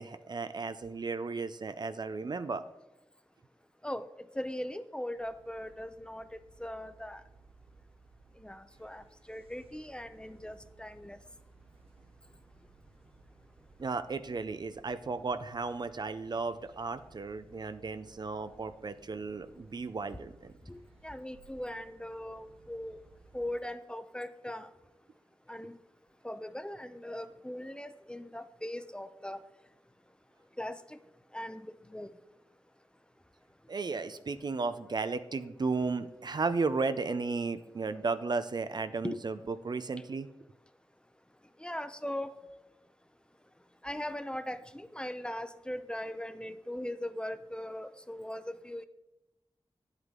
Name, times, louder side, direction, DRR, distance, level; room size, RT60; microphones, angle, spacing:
voice 1, 0.0-2.6 13.8-20.5 33.7-40.3, right 4 dB, 50° right, 12 dB, 0.5 m, -34 dB
voice 2, 4.4-7.2 8.4-11.2 20.7-23.0 23.3-24.7 25.5-25.8 26.2-29.4 30.6-31.0 31.3-32.1 39.0-39.2 41.6-42.3 43.8-48.9, left 1 dB, 10° left, 11 dB, 0.6 m, -39 dB
sound 1, 5.1-23.5, right 3 dB, 85° right, 1.2 m, -60 dB
9.2 x 8.1 x 3.7 m, 0.93 s
cardioid pair, 50°, 9 cm